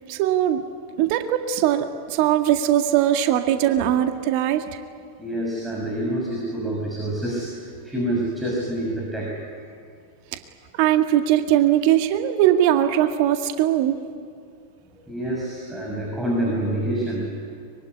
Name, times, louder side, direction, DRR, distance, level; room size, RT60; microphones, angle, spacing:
voice 1, 0.1-0.6 1.0-4.8 10.3-10.4 10.7-14.0, right 11 dB, 45° right, 6 dB, 1.9 m, -20 dB
voice 2, 5.2-9.7 14.9-17.5, right 1 dB, 5° right, -3 dB, 6.3 m, -27 dB
24.5 x 23.0 x 9.8 m, 2.2 s
figure-of-eight pair, 90°, 0 cm